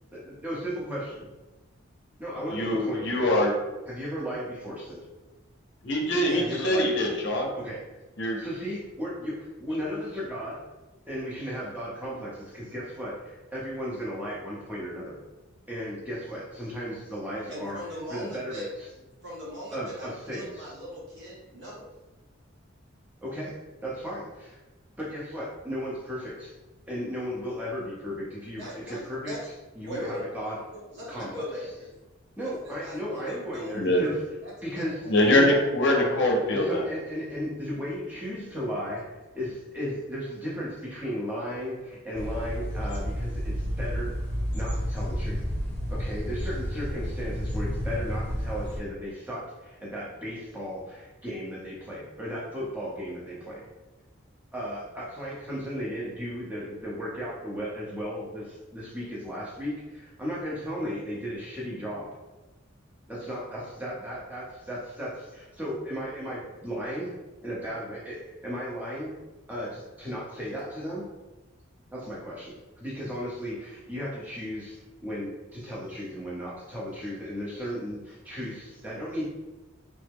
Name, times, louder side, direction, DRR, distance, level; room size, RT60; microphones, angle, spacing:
voice 1, 0.1-1.3 2.2-3.3 3.9-5.1 6.3-7.2 7.6-7.8 8.4-10.6 11.1-15.2 15.7-17.8 18.1-18.9 19.7-20.7 23.2-24.6 25.0-26.5 26.9-29.3 29.8-30.6 31.1-31.4 32.4-34.2 34.6-36.2 36.5-39.0 39.3-44.1 44.5-45.4 45.9-53.6 54.5-62.1 63.1-67.1 67.4-69.2 69.5-71.0 71.9-79.3, equal, 10° right, -6 dB, 0.8 m, -35 dB
voice 2, 2.5-3.5 5.8-7.5 8.2-8.4 33.7-34.0 35.1-36.8, left 1 dB, 60° left, 0 dB, 0.6 m, -23 dB
voice 3, 17.5-18.7 19.2-21.9 28.6-29.4 29.8-30.2 30.7-31.9 32.4-32.5 32.8-34.1 34.4-35.2, equal, 60° right, -6 dB, 1.3 m, -39 dB
sound 1, 42.1-48.8, equal, 10° left, 1.0 m, -31 dB
3.2 x 2.1 x 3.4 m, 1.1 s
head